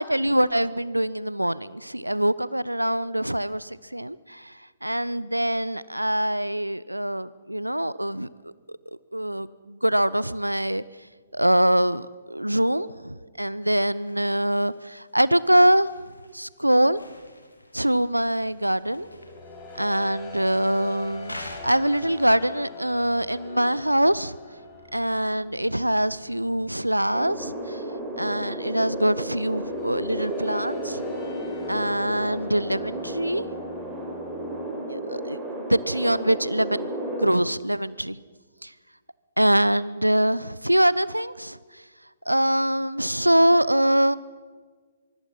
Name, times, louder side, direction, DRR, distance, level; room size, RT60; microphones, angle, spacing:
voice 1, 0.0-4.5 4.8-10.8 11.3-15.9 16.3-17.0 17.7-19.1 19.8-24.4 24.9-27.8 28.2-31.0 31.7-33.4 34.9-38.2 38.6-38.7 39.4-41.6 42.3-44.2, right 1 dB, 85° right, 19 dB, 0.6 m, -24 dB
sound 1, 13.6-21.6, left 1 dB, 80° left, 3.2 m, -47 dB
sound 2, 18.3-34.7, left 4 dB, 15° left, 5.1 m, -44 dB
sound 3, 27.1-37.3, right 1 dB, 5° right, 4.7 m, -33 dB
24.0 x 24.0 x 5.6 m, 1.5 s
figure-of-eight pair, 125°, 0 cm